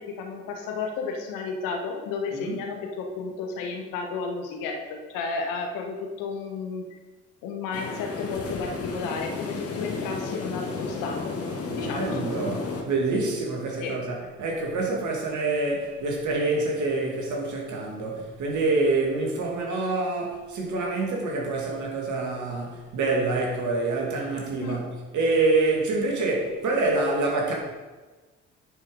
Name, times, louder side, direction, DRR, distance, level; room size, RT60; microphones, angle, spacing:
voice 1, 0.0-6.8 7.4-11.3 11.7-12.2 13.8-14.0 24.6-24.8, left 4 dB, 65° left, 1.4 m, -32 dB
sound 1, 7.7-12.8, left 4 dB, 40° left, 1.7 m, -33 dB
voice 2, 11.7-27.5, right 3 dB, 55° right, 2.4 m, -26 dB
9.9 x 5.4 x 5.1 m
figure-of-eight pair, 45°, 35 cm